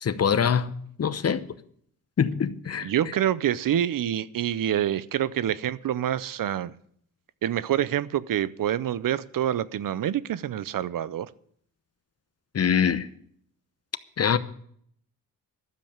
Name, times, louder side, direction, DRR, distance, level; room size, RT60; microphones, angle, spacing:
voice 1, 0.0-0.7 1.0-1.4 2.2-2.9 12.5-13.1 14.2-14.4, left 7 dB, 45° left, 0.9 m, -23 dB
voice 2, 2.8-6.7 7.4-11.3, right 11 dB, 70° right, 0.7 m, -27 dB
12.5 x 7.7 x 8.6 m
cardioid pair, 100°, 35 cm